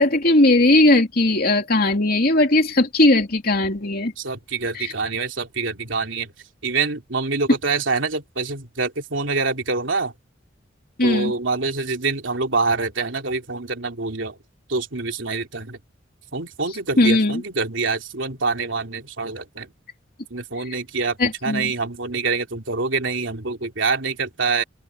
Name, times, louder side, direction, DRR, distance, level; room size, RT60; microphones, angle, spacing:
voice 1, 0.0-4.1 4.7-4.9 11.0-11.3 17.0-17.4 21.2-21.7, left 2 dB, 55° left, 2.9 m, -18 dB
voice 2, 4.2-6.3 6.6-10.1 11.0-14.4 14.7-15.8 16.3-19.7 20.3-24.6, right 4 dB, 85° right, 3.0 m, -25 dB
open air
head